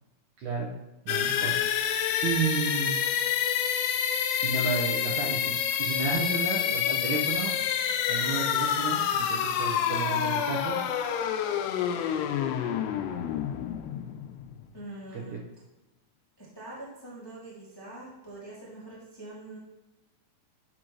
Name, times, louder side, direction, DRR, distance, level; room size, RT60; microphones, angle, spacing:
voice 1, 0.4-0.7 1.1-3.0 4.4-7.5 8.1-10.8 15.1-15.4, right 5 dB, 70° right, -3 dB, 2.0 m, -32 dB
sound 1, 1.1-14.8, left 9 dB, 90° left, 2.7 m, -28 dB
voice 2, 14.7-15.3 16.4-19.6, right 2 dB, 30° left, -8 dB, 0.4 m, -44 dB
9.8 x 6.2 x 3.1 m, 1.0 s
omnidirectional pair, 4.6 m